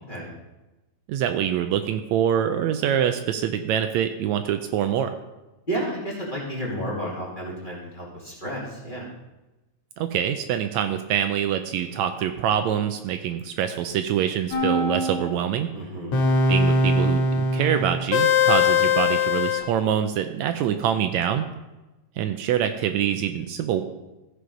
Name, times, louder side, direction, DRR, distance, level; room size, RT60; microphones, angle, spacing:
voice 1, 1.1-5.1 10.0-15.7 16.5-21.5 22.2-23.8, right 9 dB, 80° right, 8 dB, 1.8 m, -25 dB
voice 2, 5.7-9.1 15.7-16.2, right 1 dB, 20° left, -6 dB, 2.1 m, -31 dB
sound 1, 14.5-15.4 16.1-19.6, left 3 dB, 80° left, 3.0 m, -21 dB
14.5 x 5.0 x 5.2 m, 1.1 s
omnidirectional pair, 3.3 m